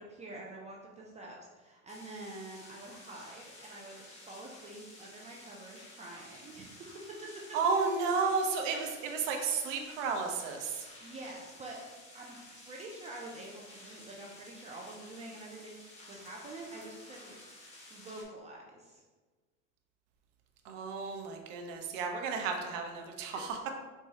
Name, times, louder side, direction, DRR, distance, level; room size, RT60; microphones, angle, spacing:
voice 1, 0.0-7.4 8.7-9.0 11.0-11.8 12.1-17.3 17.9-19.0 23.3-23.7, right 2 dB, 20° right, -2 dB, 0.3 m, -47 dB
sound 1, 1.9-18.2, left 1 dB, 15° left, 1.2 m, -53 dB
voice 2, 7.5-10.7 20.7-23.4, right 4 dB, 65° right, 3 dB, 0.7 m, -32 dB
4.3 x 2.3 x 2.7 m, 1.3 s
hypercardioid pair, 95°, 40 cm